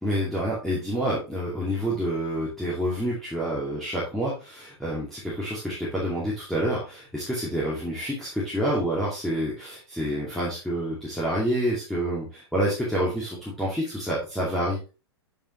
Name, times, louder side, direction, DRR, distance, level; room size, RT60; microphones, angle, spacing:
voice 1, 0.0-14.8, equal, ahead, -7 dB, 2.5 m, -28 dB
8.8 x 5.1 x 3.2 m, 0.32 s
figure-of-eight pair, 105°, 14 cm